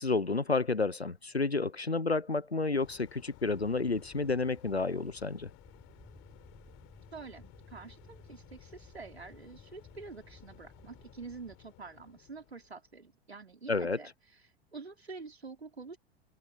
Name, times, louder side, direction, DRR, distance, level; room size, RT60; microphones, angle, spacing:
voice 1, 0.0-5.5 13.7-14.0, left 3 dB, 90° left, 1.1 m, -30 dB
sound 1, 2.7-12.9, left 26 dB, 45° left, 5.3 m, -57 dB
sound 2, 3.5-11.6, equal, ahead, 7.0 m, -58 dB
voice 2, 7.1-14.1 14.7-16.0, right 4 dB, 80° right, 4.6 m, -47 dB
figure-of-eight pair, 85°, 31 cm